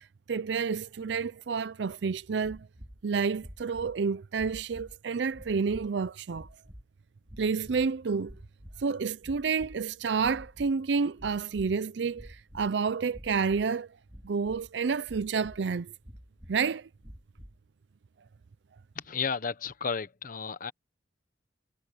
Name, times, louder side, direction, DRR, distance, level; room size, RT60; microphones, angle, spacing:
voice 1, 0.0-2.7 3.0-6.5 7.4-8.3 8.8-13.9 14.2-15.9 16.5-16.9, right 5 dB, 70° right, 0.5 m, -29 dB
sound 1, 2.4-3.0 3.4-4.0 4.3-5.0 5.3-5.9 6.3-6.8 7.3-7.9 8.2-8.9 9.2-9.8 10.2-10.7 11.1-11.8 12.1-12.7 13.1-13.7 14.1-14.7 15.0-15.6 16.0-16.6 17.0-17.6, equal, 25° right, 4.1 m, -49 dB
voice 2, 18.9-20.7, left 5 dB, 50° left, 1.0 m, -33 dB
head